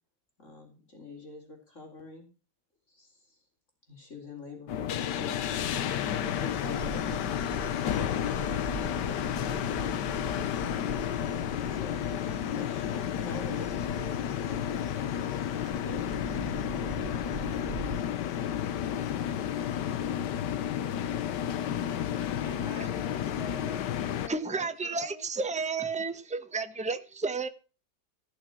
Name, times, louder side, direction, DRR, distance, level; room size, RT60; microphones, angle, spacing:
voice 1, 0.4-2.3 2.9-3.4 3.9-10.8 11.7-16.3, left 2 dB, 45° left, 4.1 m, -46 dB
sound 1, 4.7-24.3, left 10 dB, 90° left, 1.5 m, -31 dB
Livestock farm animals working animals, 5.5-18.0, right 6 dB, 45° right, 1.2 m, -44 dB
voice 2, 22.4-25.3, left 3 dB, 60° left, 2.7 m, -46 dB
voice 3, 24.3-27.5, right 4 dB, 5° right, 0.7 m, -32 dB
16.5 x 6.6 x 6.0 m
omnidirectional pair, 1.8 m